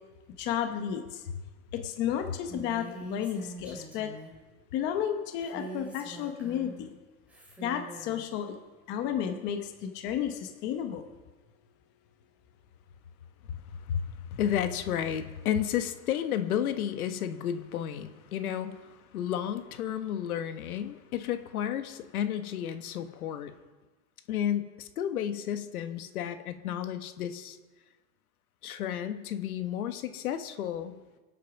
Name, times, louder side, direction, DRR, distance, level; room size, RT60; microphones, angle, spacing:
voice 1, 0.4-1.2 1.7-4.1 4.7-6.9 7.6-8.6 8.9-11.0, left 9 dB, 25° left, 6 dB, 0.9 m, -32 dB
Female speech woman speaking, 2.5-4.4 5.4-6.8 7.3-8.2, right 3 dB, 5° right, 2.4 m, -44 dB
voice 2, 13.8-23.5 24.3-27.6 28.6-30.9, left 9 dB, 75° left, 9 dB, 1.5 m, -32 dB
24.5 x 8.4 x 6.0 m, 1.3 s
supercardioid pair, 165°, 44 cm